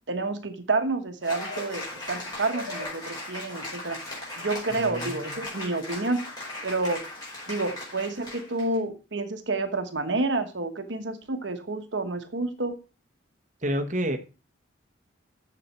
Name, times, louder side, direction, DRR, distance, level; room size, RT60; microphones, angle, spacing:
voice 1, 0.1-4.0 4.4-6.2 6.6-7.0 7.5-12.8, right 3 dB, 70° right, 7 dB, 1.1 m, -29 dB
Cheering / Applause, 1.2-8.7, left 2 dB, 20° left, 5.0 m, -37 dB
voice 2, 4.8-5.4 13.6-14.2, equal, 40° right, 5 dB, 1.2 m, -29 dB
7.4 x 7.1 x 5.5 m, 0.32 s
head